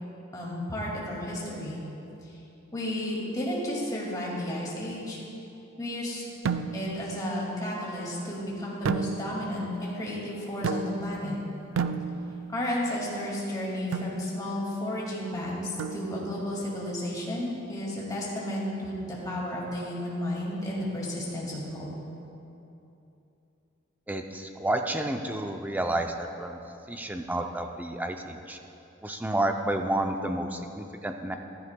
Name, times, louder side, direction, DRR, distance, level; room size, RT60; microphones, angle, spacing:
voice 1, 0.3-1.8 2.7-5.2 5.8-6.2 6.7-11.4 12.5-21.9, left 1 dB, 20° left, -5 dB, 2.1 m, -32 dB
sound 1, 6.5-7.1 8.8-9.6 10.6-11.2 11.8-12.6 13.9-14.2 15.8-16.4, right 5 dB, 70° right, 0.4 m, -32 dB
voice 2, 24.1-26.6 26.9-28.6 29.0-31.4, right 1 dB, 10° right, 5 dB, 0.4 m, -30 dB
15.0 x 11.0 x 2.2 m, 2.9 s
head